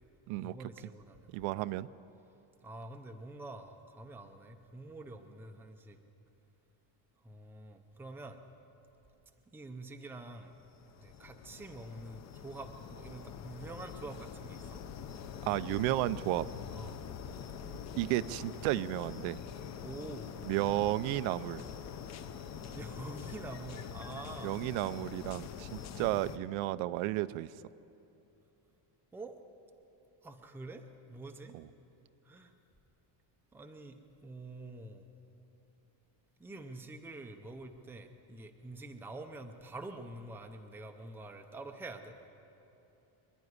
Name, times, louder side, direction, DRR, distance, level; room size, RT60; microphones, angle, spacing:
voice 1, 0.4-1.3 2.6-6.0 7.2-8.4 9.5-10.5 11.0-14.8 16.7-17.0 19.8-20.3 22.7-24.6 29.1-29.4 30.2-31.6 32.2-32.5 33.5-35.1 36.4-42.2, right 2 dB, 5° right, 5 dB, 0.5 m, -46 dB
voice 2, 1.3-1.9 15.4-16.5 18.0-19.4 20.4-21.6 24.4-27.5 31.5-31.6, right 16 dB, 75° right, 15 dB, 0.6 m, -33 dB
sound 1, 10.5-26.4, left 7 dB, 35° left, 0.7 m, -45 dB
25.0 x 11.0 x 9.6 m, 3.0 s
cardioid pair, 175°, 48 cm